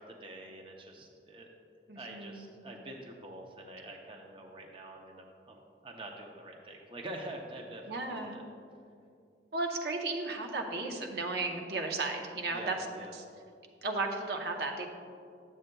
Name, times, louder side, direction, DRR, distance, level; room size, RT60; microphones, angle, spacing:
voice 1, 0.0-8.4 12.5-13.1, right 1 dB, 30° right, 0 dB, 0.6 m, -46 dB
voice 2, 1.9-2.5 7.9-8.4 9.5-12.8 13.8-14.9, right 3 dB, 65° right, 3 dB, 0.8 m, -34 dB
11.0 x 7.6 x 2.2 m, 2.4 s
head